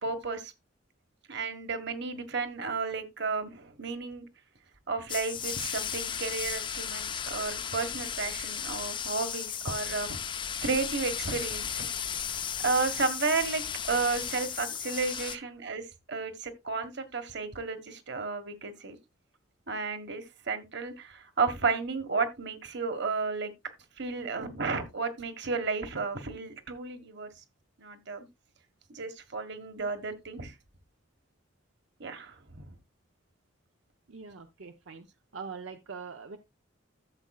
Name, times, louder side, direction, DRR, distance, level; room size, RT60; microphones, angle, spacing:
voice 1, 0.0-0.5 1.3-4.2 4.9-10.2 10.6-11.9 12.6-15.8 16.1-19.0 19.7-23.5 24.0-27.3 27.8-28.3 28.9-30.5 32.0-32.7, right 4 dB, 60° right, 1.4 m, -32 dB
sound 1, 5.1-15.4, left 8 dB, 25° left, 0.4 m, -35 dB
voice 2, 34.1-35.1 35.3-36.4, right 5 dB, 80° right, 0.7 m, -43 dB
13.0 x 7.4 x 2.3 m
head